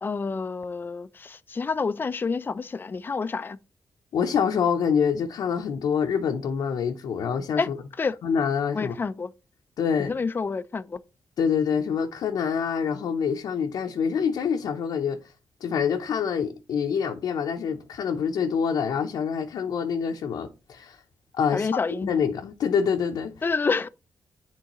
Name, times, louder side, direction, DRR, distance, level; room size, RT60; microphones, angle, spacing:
voice 1, 0.0-3.6 7.6-7.7 8.0-8.1 8.7-9.3 10.0-11.0 21.5-22.1 23.4-23.9, left 4 dB, 30° left, 0.4 m, -28 dB
voice 2, 4.1-7.8 8.2-8.9 9.8-10.1 11.4-15.2 15.6-21.0 21.4-21.8 22.1-23.3, left 7 dB, 80° left, 0.6 m, -26 dB
9.9 x 3.7 x 3.0 m
cardioid pair, 70°, 7 cm